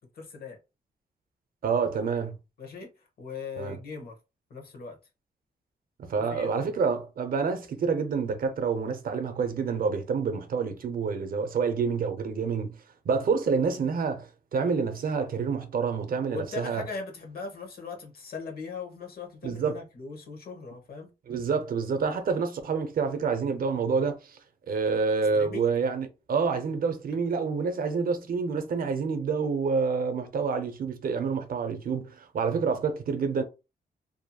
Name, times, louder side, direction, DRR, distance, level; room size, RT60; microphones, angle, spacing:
voice 1, 0.1-0.6 2.6-2.9 3.2-4.1 4.5-5.0 6.1-6.5 16.2-21.1 25.3-25.7 30.4-30.5, left 5 dB, 65° left, 0.9 m, -39 dB
voice 2, 1.6-2.4 3.6-3.8 6.1-12.8 13.1-16.8 19.4-19.8 21.3-24.4 24.7-33.4, right 5 dB, 60° right, 0.5 m, -28 dB
2.8 x 2.6 x 2.2 m
wide cardioid pair, 150°, 17 cm